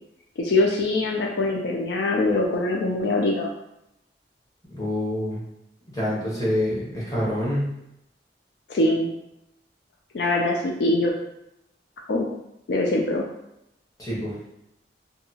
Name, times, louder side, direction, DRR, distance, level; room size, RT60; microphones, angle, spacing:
voice 1, 0.4-3.5 8.7-9.1 10.1-11.1 12.1-12.3 12.7-13.3, left 2 dB, 70° left, -1 dB, 0.3 m, -23 dB
voice 2, 4.7-5.4 5.9-7.7 14.0-14.3, left 1 dB, 20° left, -7 dB, 1.0 m, -26 dB
2.8 x 2.2 x 2.7 m, 0.83 s
head